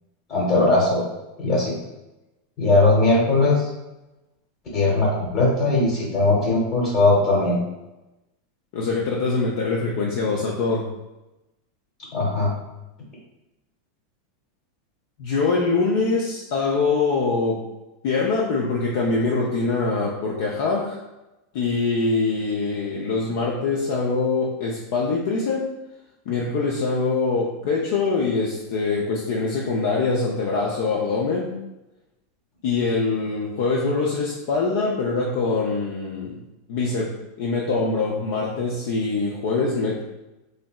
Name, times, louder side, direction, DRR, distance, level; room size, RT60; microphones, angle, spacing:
voice 1, 0.3-1.0 1.4-1.7 2.6-3.7 4.7-7.6 12.1-12.5, left 2 dB, 50° left, -5 dB, 1.1 m, -19 dB
voice 2, 8.7-10.9 15.2-17.6 18.0-21.0 21.5-25.7 26.3-31.6 32.6-40.0, left 3 dB, 65° left, -2 dB, 0.5 m, -24 dB
3.2 x 2.8 x 2.3 m, 1.0 s
hypercardioid pair, 105°, 0 cm